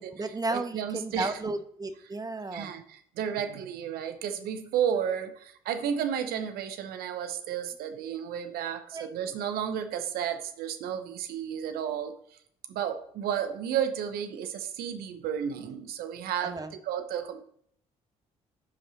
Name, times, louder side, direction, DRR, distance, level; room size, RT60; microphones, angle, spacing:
voice 1, 0.0-2.7 8.9-9.1 16.4-16.7, right 2 dB, 20° right, 10 dB, 1.0 m, -34 dB
voice 2, 0.5-1.4 2.5-12.2 12.7-17.4, right 8 dB, 60° right, 9 dB, 0.8 m, -32 dB
14.5 x 5.4 x 3.0 m, 0.64 s
hypercardioid pair, 45°, 17 cm